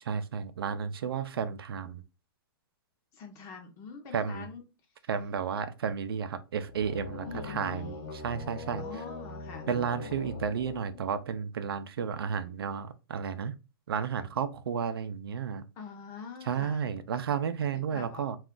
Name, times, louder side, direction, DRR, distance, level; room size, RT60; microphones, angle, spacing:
voice 1, 0.1-2.0 4.1-4.5 5.1-8.8 9.7-13.6 13.9-15.6 16.5-18.4, right 7 dB, 90° right, 0.4 m, -32 dB
voice 2, 3.1-4.6 7.2-8.1 8.8-9.7 15.8-16.9 17.7-18.3, left 5 dB, 25° left, 0.6 m, -45 dB
sound 1, 6.6-11.4, left 4 dB, 60° left, 0.8 m, -41 dB
2.4 x 2.4 x 3.6 m
hypercardioid pair, 155°, 12 cm